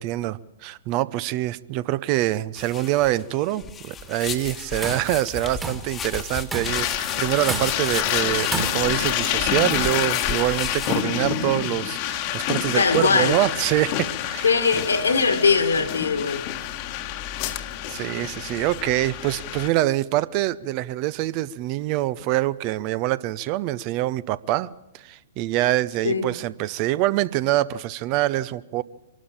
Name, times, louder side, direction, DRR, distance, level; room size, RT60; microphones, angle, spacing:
voice 1, 0.0-14.5 17.9-24.7 25.0-28.8, right 15 dB, 40° right, 0.6 m, -25 dB
sound 1, 2.6-11.0, left 6 dB, 20° left, 1.3 m, -34 dB
Tools, 4.6-5.1 5.6-6.0 6.5-6.9 7.5-8.0 8.5-9.1, right 4 dB, 15° right, 1.9 m, -31 dB
sound 2, 6.7-19.7, left 12 dB, 40° left, 1.3 m, -28 dB
voice 2, 12.7-13.4 14.4-16.5 26.0-26.3, left 5 dB, 80° left, 2.0 m, -21 dB
23.5 x 12.5 x 8.9 m
figure-of-eight pair, 110°, 0 cm